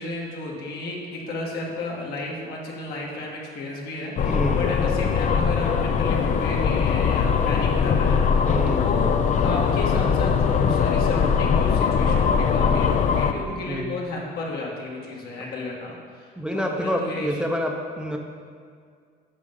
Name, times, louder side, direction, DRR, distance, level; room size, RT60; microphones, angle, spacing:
voice 1, 0.0-9.2 9.4-17.5, left 2 dB, 70° left, -2 dB, 1.8 m, -33 dB
sound 1, 4.2-13.3, left 6 dB, 45° left, 0.5 m, -21 dB
voice 2, 4.2-4.7 8.4-8.9 13.7-13.9 16.4-18.2, equal, 5° right, 1 dB, 0.7 m, -28 dB
8.4 x 5.4 x 5.3 m, 2.1 s
cardioid pair, 110°, 17 cm